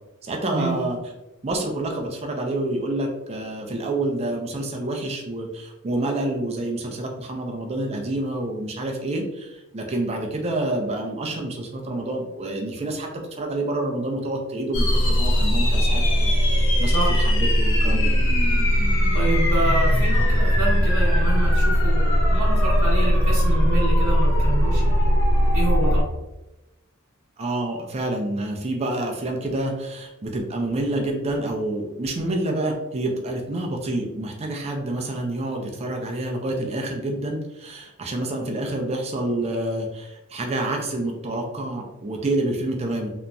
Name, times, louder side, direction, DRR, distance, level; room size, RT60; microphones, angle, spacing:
voice 1, 0.2-1.0 1.4-18.1 27.4-43.1, right 1 dB, 30° right, 1 dB, 0.4 m, -28 dB
sound 1, 14.7-26.0, equal, 60° left, 0.6 m, -19 dB
voice 2, 19.1-25.1 25.5-26.0, right 2 dB, 80° right, -8 dB, 0.8 m, -28 dB
2.9 x 2.5 x 2.2 m, 0.96 s
head